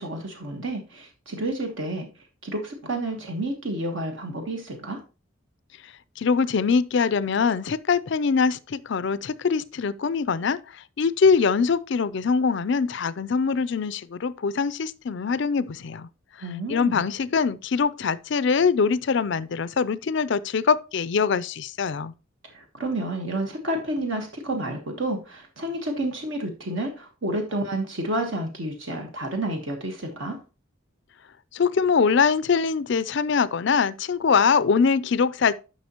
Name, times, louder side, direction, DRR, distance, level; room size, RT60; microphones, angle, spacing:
voice 1, 0.0-2.1 2.4-5.0 16.4-17.1 22.4-30.4, right 1 dB, 60° right, 1.3 m, -30 dB
voice 2, 6.2-10.6 11.0-16.1 16.7-22.1 31.5-35.5, left 5 dB, 55° left, 0.4 m, -23 dB
10.5 x 5.8 x 2.9 m
head